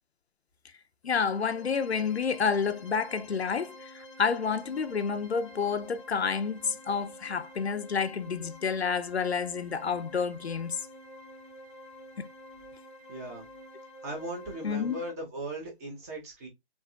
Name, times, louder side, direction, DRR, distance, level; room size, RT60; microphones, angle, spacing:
voice 1, 1.0-10.8 12.2-12.3 14.6-15.0, left 6 dB, 80° left, 0.7 m, -29 dB
sound 1, 1.0-15.1, equal, 30° left, 0.7 m, -49 dB
voice 2, 13.1-13.5 14.0-16.5, right 1 dB, 15° right, 0.9 m, -38 dB
7.1 x 3.0 x 2.4 m
figure-of-eight pair, 150°, 32 cm